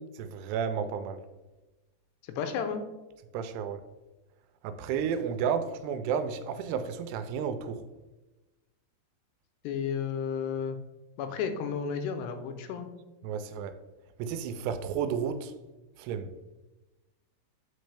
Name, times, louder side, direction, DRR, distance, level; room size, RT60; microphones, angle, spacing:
voice 1, 0.2-1.2 3.3-3.8 4.6-7.8 13.2-13.8 14.2-15.5 16.0-16.3, right 7 dB, 85° right, 10 dB, 2.7 m, -32 dB
voice 2, 2.4-2.8 9.6-10.8 11.2-12.9, left 7 dB, 85° left, 7 dB, 2.8 m, -32 dB
7.9 x 5.2 x 3.3 m, 1.1 s
omnidirectional pair, 4.7 m